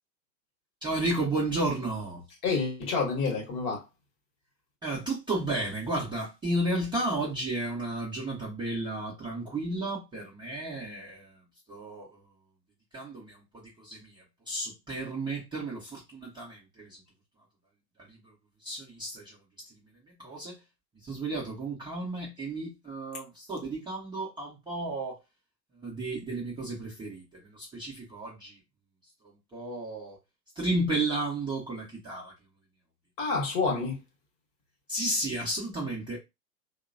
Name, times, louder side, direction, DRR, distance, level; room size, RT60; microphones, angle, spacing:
voice 1, 0.8-2.2 4.8-11.4 11.7-12.1 12.9-13.4 13.8-14.1 14.5-17.0 18.1-18.2 18.6-19.3 20.2-20.6 21.0-25.2 25.8-27.2 27.5-28.6 29.5-30.2 30.6-32.3 34.9-36.2, right 2 dB, 10° right, 0.7 m, -32 dB
voice 2, 2.4-3.8 33.2-34.0, left 4 dB, 35° left, 1.0 m, -28 dB
2.9 x 2.1 x 2.5 m
hypercardioid pair, 110°, 50 cm